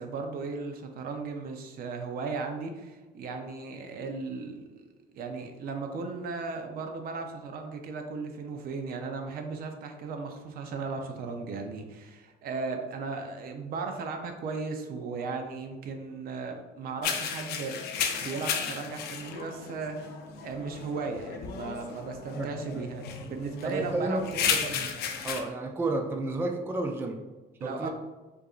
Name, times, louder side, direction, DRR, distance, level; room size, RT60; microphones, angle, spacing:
voice 1, 0.0-4.8 5.1-20.1 20.4-24.5 27.6-27.9, right 4 dB, 60° right, 5 dB, 0.5 m, -36 dB
sound 1, 17.0-25.4, left 7 dB, 70° left, 0.5 m, -34 dB
voice 2, 22.3-22.8 23.6-24.9 25.2-27.2 27.6-27.9, right 2 dB, 15° right, 4 dB, 0.3 m, -32 dB
4.6 x 2.5 x 2.4 m, 1.2 s
cardioid pair, 110°, 17 cm